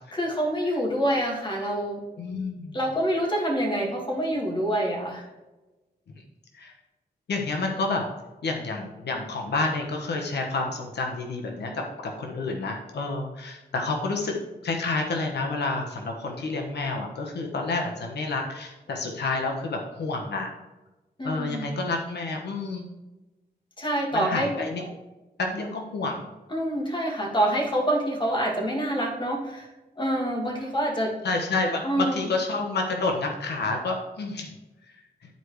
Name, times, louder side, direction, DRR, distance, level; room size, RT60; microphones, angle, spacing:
voice 1, 0.1-2.0 2.7-5.3 21.2-21.8 23.8-24.6 26.5-29.7 30.0-31.1 31.8-32.2, right 1 dB, 30° left, -1 dB, 2.0 m, -26 dB
voice 2, 2.2-2.8 6.1-6.2 6.5-6.7 7.3-8.0 8.4-14.3 14.6-20.5 21.2-22.8 24.1-24.9 25.4-26.2 31.2-34.5, left 3 dB, 90° left, 2 dB, 1.2 m, -29 dB
11.0 x 4.7 x 3.2 m, 1.1 s
wide cardioid pair, 135°, 17 cm